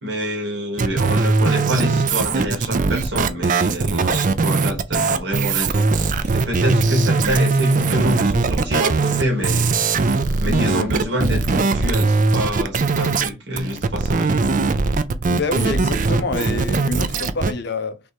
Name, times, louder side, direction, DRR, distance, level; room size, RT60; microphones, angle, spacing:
voice 1, 0.0-9.7 10.4-14.4, equal, 65° right, 1.7 m, -26 dB
sound 1, 0.8-13.3 13.6-17.5, right 4 dB, 40° right, 0.4 m, -20 dB
sound 2, 5.3-12.9, equal, 15° right, 1.6 m, -42 dB
voice 2, 10.5-10.8 15.3-18.0, left 3 dB, 55° left, 0.6 m, -26 dB
3.4 x 3.1 x 4.3 m
head